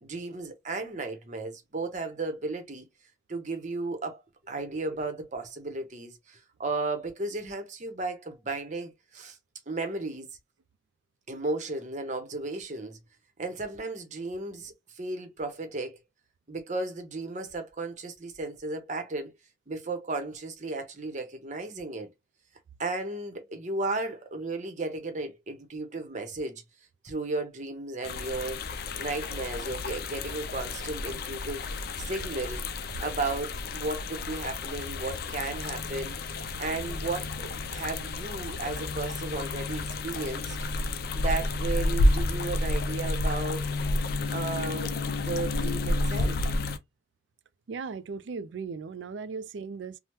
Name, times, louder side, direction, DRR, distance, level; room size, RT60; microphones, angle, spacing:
voice 1, 0.0-2.9 3.3-4.2 4.5-9.4 9.7-10.3 11.3-13.0 13.4-16.0 16.5-19.3 19.7-22.1 22.8-26.6 27.0-28.6 29.0-31.7 32.0-32.6 33.0-40.6 41.1-43.6 44.3-46.4, right 3 dB, 40° right, 0.7 m, -34 dB
sound 1, 28.0-46.8, left 2 dB, 50° left, 0.4 m, -31 dB
voice 2, 47.7-50.0, right 5 dB, 70° right, 0.3 m, -37 dB
3.2 x 2.0 x 2.9 m
head